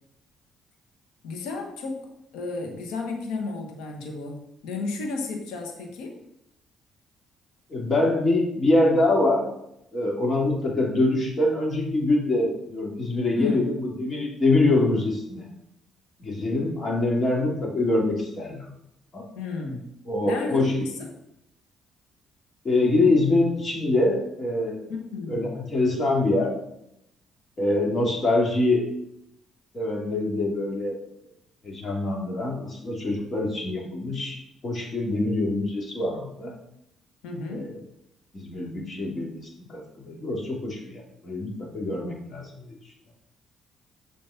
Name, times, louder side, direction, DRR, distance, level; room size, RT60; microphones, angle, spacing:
voice 1, 1.2-2.0 2.3-6.2 13.3-13.7 19.3-19.9 20.2-20.6 21.0-21.1 25.1-25.5 37.2-37.7, left 3 dB, 85° left, 3 dB, 1.5 m, -32 dB
voice 2, 7.7-9.4 9.9-15.4 16.2-18.7 19.1-19.2 20.1-20.9 22.6-24.8 25.3-26.5 27.6-28.9 29.7-31.0 31.6-36.5 37.5-37.8 38.3-42.8, left 2 dB, 40° left, -1 dB, 3.0 m, -24 dB
7.3 x 5.2 x 5.8 m, 0.80 s
cardioid pair, 80°, 0 cm